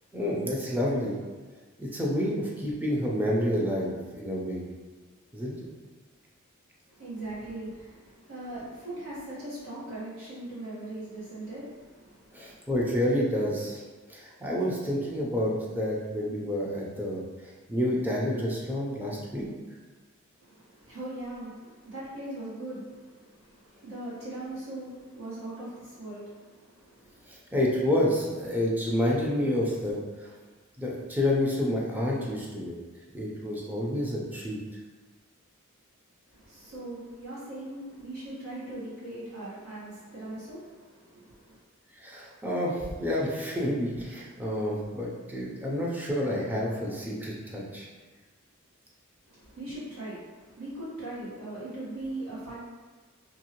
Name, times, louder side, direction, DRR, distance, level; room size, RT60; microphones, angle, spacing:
voice 1, 0.1-1.2 1.8-4.6 5.3-5.5 12.3-13.8 14.1-17.2 17.7-19.5 27.3-30.3 30.8-32.8 33.1-34.6 42.0-47.9, left 1 dB, 10° right, -4 dB, 0.5 m, -29 dB
voice 2, 6.9-12.6 20.4-27.2 36.3-41.6 49.3-52.6, right 1 dB, 70° right, -9 dB, 1.4 m, -40 dB
2.7 x 2.6 x 2.9 m, 1.3 s
head